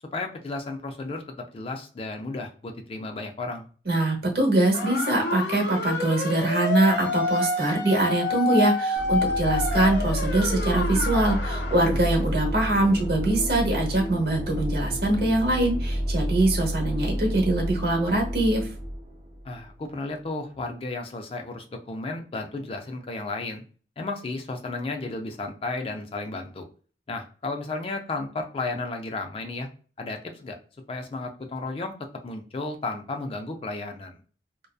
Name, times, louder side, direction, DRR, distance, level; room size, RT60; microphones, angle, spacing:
voice 1, 0.1-3.7 11.9-12.4 19.4-23.6 24.0-26.7 27.1-29.7 30.0-30.6 30.9-31.9 32.2-34.2, left 3 dB, 30° left, 4 dB, 0.3 m, -33 dB
voice 2, 3.8-18.7, right 2 dB, 65° right, 1 dB, 0.9 m, -23 dB
sound 1, 4.7-11.9, left 2 dB, 90° left, 0.6 m, -28 dB
sound 2, 9.0-19.7, equal, 25° right, 0.5 m, -30 dB
2.6 x 2.2 x 2.3 m, 0.40 s
head